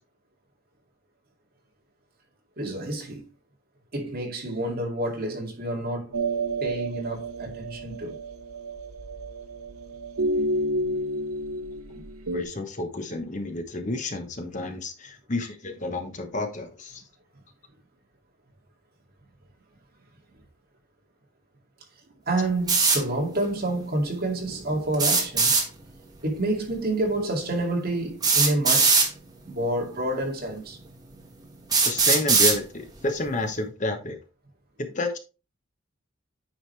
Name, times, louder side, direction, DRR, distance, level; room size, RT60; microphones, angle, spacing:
voice 1, 2.6-3.2 3.9-6.2 6.6-8.2 22.3-25.6 26.2-29.0 29.5-30.8, right 1 dB, 45° right, 2.3 m, -28 dB
sound 1, 6.1-12.4, right 1 dB, 90° right, 0.8 m, -30 dB
voice 2, 12.3-17.0 31.8-34.2 34.8-35.2, left 2 dB, 35° left, 1.0 m, -30 dB
sound 2, 22.7-23.0 24.9-25.6 27.1-27.2 28.2-29.1 30.1-30.2 30.9-31.0 31.7-32.6, right 4 dB, 20° right, 1.6 m, -20 dB
9.3 x 5.1 x 3.2 m
head